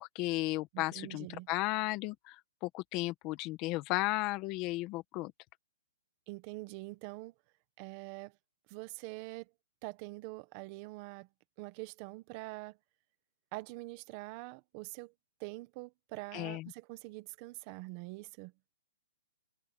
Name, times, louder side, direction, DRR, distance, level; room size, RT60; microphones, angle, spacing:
voice 1, 0.0-5.3 16.3-16.7, left 20 dB, 25° left, 1.4 m, -35 dB
voice 2, 0.7-1.5 6.3-7.3 7.8-8.4 8.7-9.5 9.8-11.3 11.6-12.8 13.5-15.1 15.4-18.5, right 22 dB, 30° right, 1.4 m, -45 dB
hypercardioid pair, 165°, 0 cm